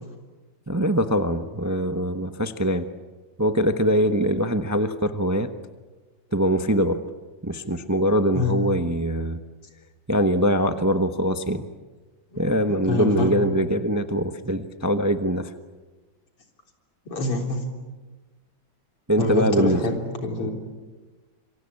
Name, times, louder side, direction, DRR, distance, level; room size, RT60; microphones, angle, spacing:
voice 1, 0.7-2.9 3.4-5.5 6.3-7.0 7.4-9.4 10.1-11.7 12.4-15.5 19.1-19.8, equal, 30° right, 8 dB, 0.3 m, -23 dB
voice 2, 12.7-13.3 17.1-17.6 19.2-19.9 20.2-20.5, left 2 dB, 90° left, 3 dB, 4.6 m, -25 dB
27.0 x 24.0 x 8.6 m, 1.2 s
omnidirectional pair, 2.4 m